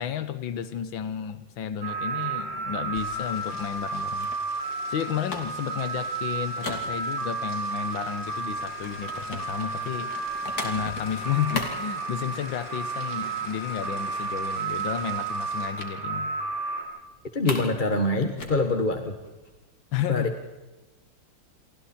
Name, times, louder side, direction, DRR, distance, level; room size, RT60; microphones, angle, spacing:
voice 1, 0.0-4.3 4.9-10.1 10.6-16.3 19.9-20.3, left 9 dB, 85° left, 12 dB, 1.9 m, -32 dB
sound 1, 1.8-16.8, right 3 dB, 45° right, 7.2 m, -32 dB
sound 2, 2.2-7.5 7.9-12.8 13.1-13.3 13.6-13.7 14.0-14.8 15.8-16.0 16.3-16.4 16.8-17.8 18.1-19.8, left 3 dB, 50° left, 3.1 m, -39 dB
sound 3, 2.9-15.7, equal, 10° left, 7.0 m, -51 dB
voice 2, 17.3-19.1 20.1-20.4, left 2 dB, 25° left, 5 dB, 1.5 m, -25 dB
29.0 x 24.5 x 4.4 m, 1.1 s
omnidirectional pair, 2.1 m